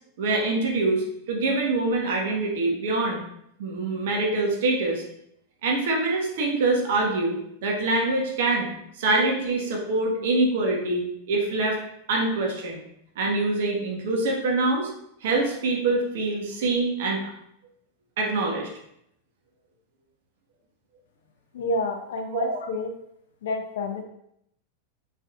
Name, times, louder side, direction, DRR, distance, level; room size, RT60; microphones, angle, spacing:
voice 1, 0.2-3.2 3.6-5.0 5.6-7.3 7.6-11.8 12.1-12.8 13.1-14.9 15.2-17.2 18.2-18.7 22.3-22.5, right 2 dB, 55° right, 0 dB, 1.6 m, -25 dB
voice 2, 21.5-22.9 23.4-24.0, left 2 dB, 60° left, 4 dB, 0.8 m, -29 dB
7.2 x 5.3 x 2.5 m, 0.75 s
figure-of-eight pair, 90°, 0 cm